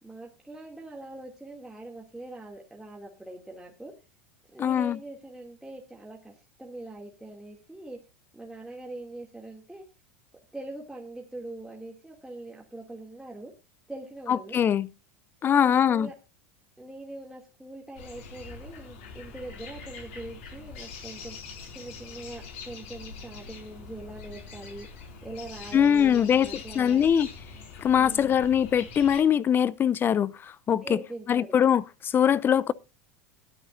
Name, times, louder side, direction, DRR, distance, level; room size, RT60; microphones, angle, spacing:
voice 1, 0.0-3.9 4.5-8.0 8.3-9.8 10.5-13.5 13.9-14.6 15.4-16.1 16.8-21.4 21.7-24.9 25.2-27.0 27.9-28.5 30.8-31.6, right 2 dB, 5° right, 2.5 m, -42 dB
voice 2, 4.6-5.0 14.3-14.9 15.4-16.1 25.7-26.5 26.8-27.3 27.8-31.0 31.3-32.7, left 8 dB, 30° left, 0.5 m, -22 dB
sound 1, 18.0-29.2, left 5 dB, 65° left, 5.2 m, -44 dB
22.0 x 7.8 x 2.6 m
hypercardioid pair, 90°, 7 cm